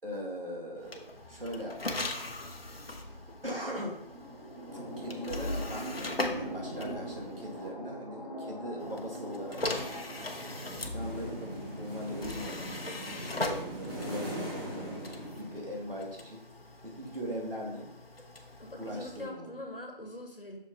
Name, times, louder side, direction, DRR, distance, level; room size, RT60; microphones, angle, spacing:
voice 1, 0.0-2.0 3.0-4.0 4.8-9.6 10.9-12.8 13.2-16.4 16.8-17.9 18.8-19.5, equal, 75° right, -2 dB, 2.2 m, -40 dB
sound 1, 0.8-7.7 8.8-19.3, left 2 dB, 85° left, 1.0 m, -40 dB
sound 2, 4.0-12.1, equal, 40° right, 2.9 m, -42 dB
sound 3, 9.5-16.0, right 1 dB, 20° right, 2.6 m, -41 dB
voice 2, 18.6-20.6, left 1 dB, 65° left, 3 dB, 1.4 m, -43 dB
7.4 x 6.4 x 2.8 m, 0.81 s
figure-of-eight pair, 180°, 29 cm